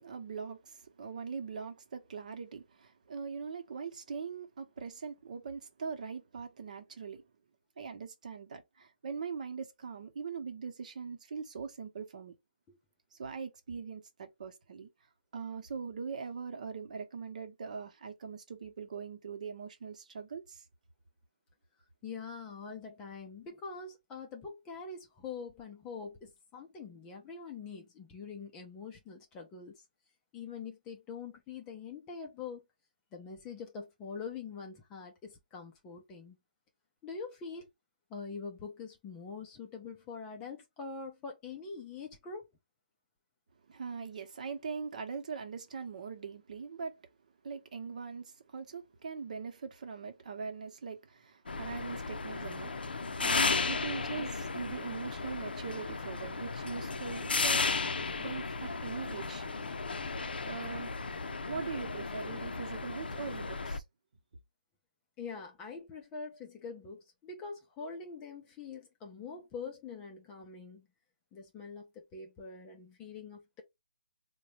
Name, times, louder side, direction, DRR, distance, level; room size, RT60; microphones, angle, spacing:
voice 1, 0.0-7.2 7.8-12.3 13.1-14.9 15.3-20.6 43.7-47.0 47.4-57.7 58.2-59.4 60.4-60.9 61.5-63.8, right 5 dB, 50° right, 0.9 m, -41 dB
voice 2, 22.0-29.7 30.3-32.6 33.1-36.4 37.0-37.7 38.1-42.4 65.2-70.9 71.3-73.6, left 5 dB, 15° left, 0.5 m, -44 dB
sound 1, 51.5-63.8, left 4 dB, 85° left, 0.5 m, -35 dB
3.9 x 2.2 x 3.1 m
hypercardioid pair, 165°, 5 cm